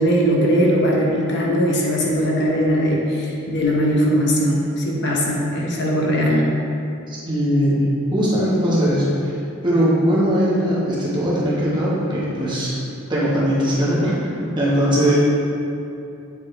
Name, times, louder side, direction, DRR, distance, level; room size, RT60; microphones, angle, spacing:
voice 1, 0.0-6.5 15.0-15.2, equal, 55° left, -3 dB, 0.9 m, -19 dB
voice 2, 7.1-12.7 13.1-15.2, equal, 20° right, -8 dB, 1.2 m, -20 dB
8.0 x 4.2 x 3.3 m, 2.6 s
head